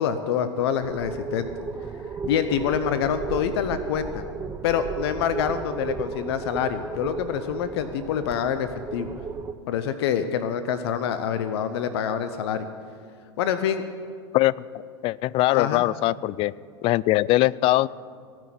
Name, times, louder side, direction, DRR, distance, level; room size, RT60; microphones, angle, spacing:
voice 1, 0.0-1.5 2.2-4.2 4.6-9.1 9.7-12.7 13.4-13.8 15.5-15.8, left 8 dB, 65° left, 10 dB, 0.8 m, -26 dB
sound 1, 0.8-9.5, right 5 dB, 20° right, 0.7 m, -35 dB
voice 2, 15.0-16.5 16.8-17.9, left 17 dB, 40° left, 21 dB, 0.4 m, -21 dB
18.0 x 6.3 x 9.3 m, 2.2 s
hypercardioid pair, 95°, 15 cm